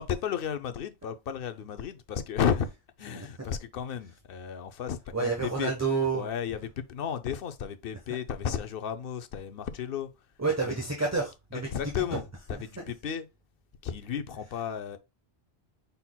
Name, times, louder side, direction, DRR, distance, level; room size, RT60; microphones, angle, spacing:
voice 1, 0.0-2.7 3.0-5.7 6.1-10.1 10.6-10.8 11.5-13.3 13.8-15.0, left 8 dB, 70° left, 0.8 m, -33 dB
voice 2, 5.1-6.3 10.4-11.7, right 4 dB, 15° right, 1.0 m, -29 dB
5.7 x 4.0 x 2.2 m
omnidirectional pair, 1.0 m